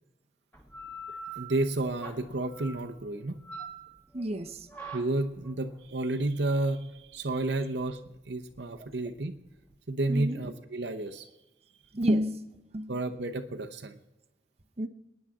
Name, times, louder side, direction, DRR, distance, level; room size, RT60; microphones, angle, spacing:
sound 1, 0.5-9.7, right 3 dB, 10° left, 2.3 m, -46 dB
voice 1, 1.4-3.4 4.9-9.3 9.9-11.3 12.9-14.0, right 2 dB, 75° right, 5 dB, 0.9 m, -31 dB
voice 2, 4.1-4.7 10.1-10.4 11.9-13.0 14.8-14.9, equal, 35° right, 4 dB, 0.9 m, -30 dB
28.0 x 9.8 x 3.8 m, 1.0 s
head